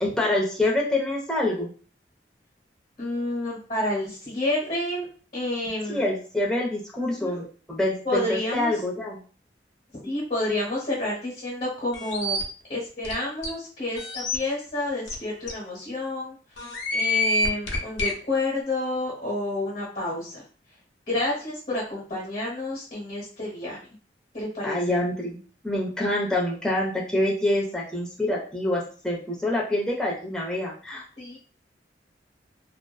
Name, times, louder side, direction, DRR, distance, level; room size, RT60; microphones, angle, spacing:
voice 1, 0.0-1.7 5.9-9.2 24.6-25.4 25.6-31.0, left 1 dB, 5° left, -3 dB, 0.6 m, -26 dB
voice 2, 3.0-5.0 5.3-6.0 7.0-7.4 8.0-8.8 10.0-12.4 12.7-20.4 21.1-23.8 24.3-25.0 31.2-31.4, left 2 dB, 45° left, -6 dB, 1.0 m, -29 dB
sound 1, 11.9-12.4 13.0-13.1 13.4-13.5 14.0-14.4 15.1-15.2 15.5-15.6 16.6-18.1, left 2 dB, 85° left, 0.6 m, -26 dB
2.5 x 2.1 x 2.3 m, 0.40 s
head